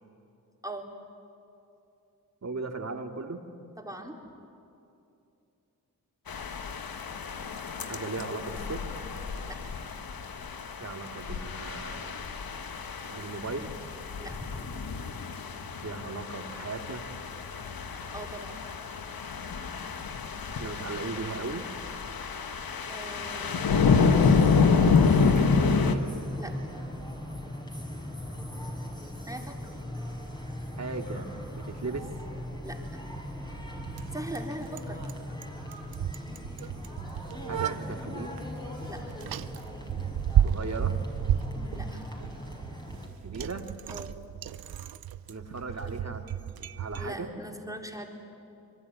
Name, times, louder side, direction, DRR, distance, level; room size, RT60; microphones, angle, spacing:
voice 1, 2.4-3.4 7.9-8.8 10.8-12.3 13.1-13.7 15.8-17.1 20.5-21.7 25.3-26.0 30.8-32.1 37.5-38.3 40.4-40.9 43.2-43.7 45.3-46.2 46.5-47.3, right 3 dB, 45° right, 5 dB, 2.4 m, -37 dB
voice 2, 3.8-4.2 9.5-9.6 14.2-14.6 18.1-18.6 22.9-24.2 26.4-26.7 29.3-29.8 32.6-33.0 34.1-35.0 38.9-39.0 41.6-42.0 43.9-44.1 47.0-48.1, right 1 dB, 10° right, 1 dB, 3.9 m, -41 dB
sound 1, 6.3-26.0, left 5 dB, 70° left, 1.6 m, -28 dB
sound 2, 24.0-43.1, left 1 dB, 10° left, 5.3 m, -37 dB
Bicycle, 30.8-47.1, right 9 dB, 75° right, 0.7 m, -34 dB
24.0 x 22.5 x 9.4 m, 2.7 s
cardioid pair, 45°, 37 cm